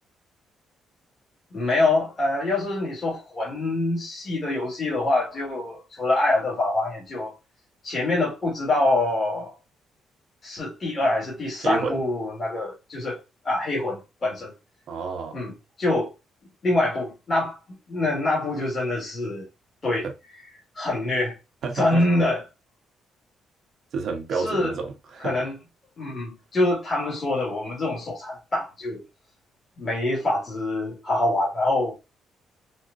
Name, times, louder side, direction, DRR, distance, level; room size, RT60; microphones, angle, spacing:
voice 1, 1.5-7.3 7.8-9.5 10.4-13.2 13.4-14.5 15.3-16.1 16.6-17.6 17.9-19.4 19.8-20.1 20.7-21.4 21.7-22.4 24.3-24.7 25.2-25.6 26.0-29.0 29.8-31.9, left 2 dB, 35° left, 1.7 m, -25 dB
voice 2, 11.6-12.0 14.9-15.4 20.0-20.1 21.6-22.0 23.9-25.3, right 4 dB, 65° right, 1.0 m, -29 dB
4.2 x 2.3 x 2.5 m
cardioid pair, 90°, 0 cm